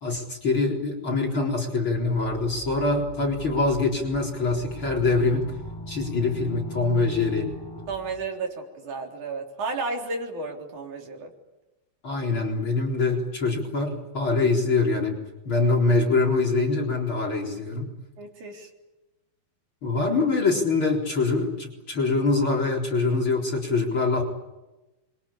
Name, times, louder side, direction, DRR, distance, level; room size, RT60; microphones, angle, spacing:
voice 1, 0.0-5.4 5.9-7.5 12.0-15.2 15.4-17.9 19.8-24.2, left 3 dB, 30° left, 3 dB, 4.5 m, -24 dB
sound 1, 1.9-8.3, right 1 dB, 5° left, 5.5 m, -40 dB
voice 2, 7.9-11.3 18.2-18.7, right 3 dB, 45° right, 2 dB, 4.9 m, -33 dB
27.0 x 24.0 x 8.6 m, 1.0 s
omnidirectional pair, 4.8 m